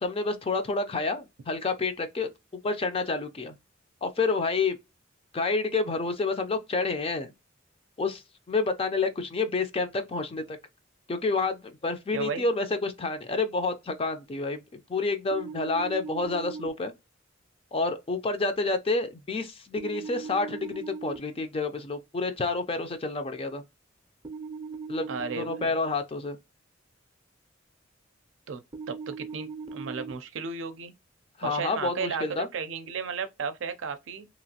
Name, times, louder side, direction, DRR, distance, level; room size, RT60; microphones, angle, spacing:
voice 1, 0.0-3.6 4.0-4.8 5.3-7.3 8.0-8.2 8.5-10.6 11.1-16.9 17.7-23.6 24.9-25.1 25.4-26.4 31.4-32.5, left 3 dB, 30° left, 0.5 m, -29 dB
voice 2, 12.1-12.4 25.1-25.8 28.5-28.6 28.9-30.9 31.4-34.3, right 5 dB, 80° right, 0.5 m, -34 dB
sound 1, 15.3-16.7 19.8-21.2 24.2-25.6 28.7-30.1, right 5 dB, 30° right, 0.5 m, -39 dB
2.9 x 2.5 x 2.7 m
head